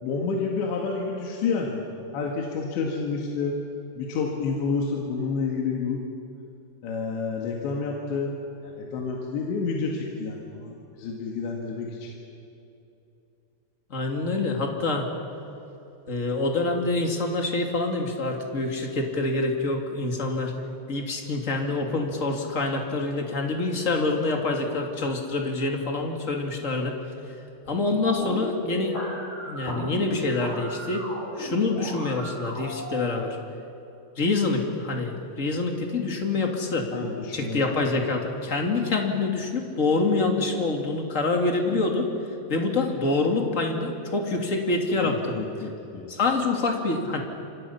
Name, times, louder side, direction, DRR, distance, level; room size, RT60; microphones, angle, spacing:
voice 1, 0.0-1.8 2.1-3.6 4.0-6.0 6.8-8.3 8.6-12.1 36.9-37.6 45.0-46.1, left 4 dB, 80° left, -1 dB, 4.1 m, -29 dB
voice 2, 13.9-15.1 16.1-20.5 20.9-26.9 27.3-27.4 27.6-29.0 29.4-31.1 31.3-33.4 34.1-36.9 37.3-42.1 42.5-45.3 45.6-45.7 46.1-47.2, left 3 dB, 30° left, 2 dB, 1.5 m, -26 dB
sound 1, 28.1-33.1, equal, 55° left, 8.1 m, -35 dB
28.0 x 25.5 x 5.8 m, 2.9 s
omnidirectional pair, 5.2 m